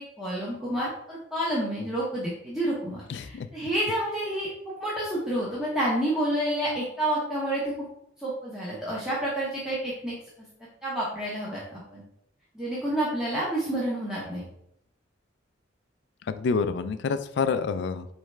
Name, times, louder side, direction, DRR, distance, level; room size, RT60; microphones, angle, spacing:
voice 1, 0.0-7.7 8.2-10.1 10.8-12.0 12.5-14.5, right 1 dB, 5° right, -8 dB, 0.9 m, -29 dB
voice 2, 3.1-3.5 16.3-18.1, left 5 dB, 60° left, 11 dB, 0.3 m, -27 dB
4.6 x 3.3 x 3.2 m, 0.73 s
head